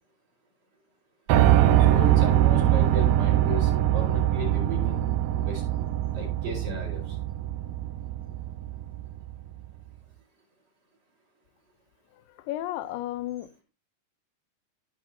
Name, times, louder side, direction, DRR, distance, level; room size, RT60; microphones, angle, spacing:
Piano, 1.3-9.3, right 12 dB, 80° right, 2.3 m, -23 dB
voice 1, 1.9-5.6 6.1-7.2, left 1 dB, 50° right, 4.0 m, -36 dB
voice 2, 12.5-13.5, left 14 dB, 90° left, 2.3 m, -32 dB
14.5 x 5.1 x 2.6 m
omnidirectional pair, 3.9 m